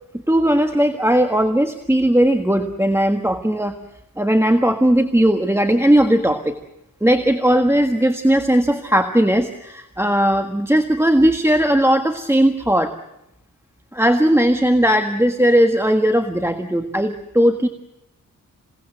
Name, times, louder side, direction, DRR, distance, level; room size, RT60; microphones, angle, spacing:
voice 1, 0.3-3.8 4.2-6.6 7.0-12.9 13.9-17.7, equal, 10° right, 6 dB, 1.5 m, -17 dB
27.5 x 18.0 x 7.8 m, 0.85 s
wide cardioid pair, 115°, 33 cm